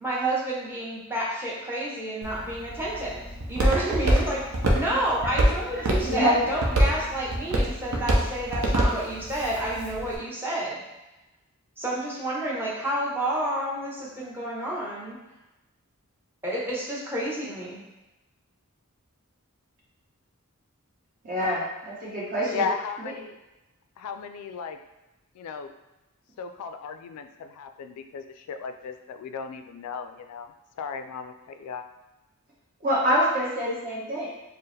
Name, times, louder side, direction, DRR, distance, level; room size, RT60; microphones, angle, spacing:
voice 1, 0.0-4.4 4.7-10.8 11.8-15.2 16.4-17.8, right 1 dB, 10° right, -6 dB, 0.8 m, -30 dB
Walk footsteps, 2.2-10.2, right 1 dB, 70° right, 0.7 m, -26 dB
voice 2, 6.2-6.6 22.5-23.4 24.0-24.8 25.3-25.7 26.4-31.9, left 6 dB, 85° left, 12 dB, 0.3 m, -35 dB
voice 3, 21.2-22.7 23.0-23.1 32.8-34.3, equal, 40° right, -6 dB, 1.1 m, -25 dB
4.4 x 2.0 x 3.2 m, 1.0 s
head